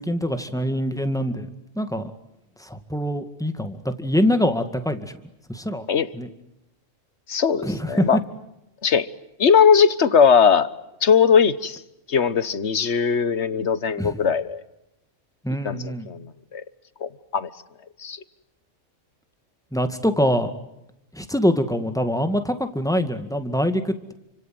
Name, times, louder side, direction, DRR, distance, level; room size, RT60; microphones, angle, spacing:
voice 1, 0.0-1.5 1.8-2.1 2.6-5.1 5.5-5.9 6.1-6.3 7.6-8.2 14.0-14.2 15.4-16.1 19.7-20.5 21.1-24.1, equal, 5° left, 8 dB, 2.1 m, -24 dB
voice 2, 7.3-8.2 8.8-9.1 9.4-10.7 11.0-11.8 12.1-14.6 15.6-16.6 17.0-17.5 18.0-18.2, left 6 dB, 60° left, 15 dB, 1.5 m, -19 dB
29.5 x 26.0 x 7.7 m, 0.86 s
omnidirectional pair, 1.3 m